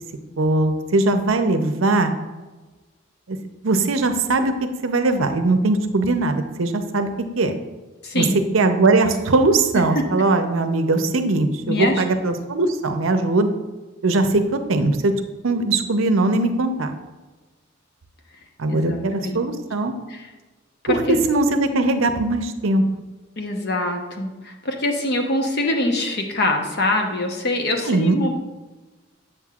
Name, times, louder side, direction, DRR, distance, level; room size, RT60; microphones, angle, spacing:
voice 1, 0.4-2.1 3.3-3.4 3.6-4.5 4.8-7.6 8.1-8.2 8.5-13.5 14.0-15.1 15.4-16.9 18.6-19.9 20.9-22.8 27.9-28.2, right 2 dB, 70° right, 7 dB, 0.6 m, -20 dB
voice 2, 8.0-8.4 9.7-10.0 11.7-12.0 18.7-19.4 20.1-20.3 20.8-21.2 23.4-28.3, left 1 dB, 50° left, 3 dB, 0.9 m, -24 dB
7.9 x 7.5 x 2.4 m, 1.2 s
head